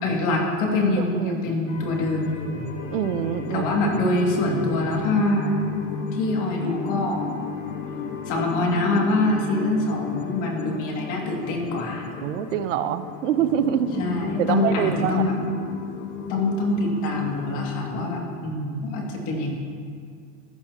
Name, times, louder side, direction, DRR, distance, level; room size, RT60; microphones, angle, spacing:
voice 1, 0.0-2.6 3.5-5.6 6.1-7.2 8.3-12.0 14.0-15.3 16.3-19.5, left 2 dB, 35° left, -1 dB, 2.4 m, -24 dB
voice 2, 1.0-1.4 2.9-3.6 12.2-14.0 14.4-15.2, right 10 dB, 65° right, 11 dB, 0.8 m, -25 dB
sound 1, 1.7-18.2, left 6 dB, 60° left, 1.4 m, -33 dB
19.0 x 15.0 x 2.9 m, 2.2 s
supercardioid pair, 180°, 41 cm